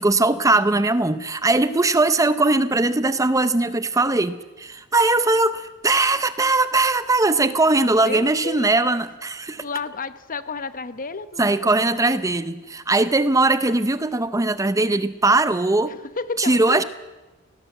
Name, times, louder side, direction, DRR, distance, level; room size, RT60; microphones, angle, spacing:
voice 1, 0.0-9.6 11.4-16.0 16.4-16.8, right 2 dB, 15° right, 13 dB, 0.6 m, -20 dB
voice 2, 8.0-9.0 9.6-11.6 11.9-12.2 15.9-16.8, left 4 dB, 40° left, 13 dB, 0.9 m, -32 dB
18.5 x 18.0 x 7.9 m, 1.1 s
head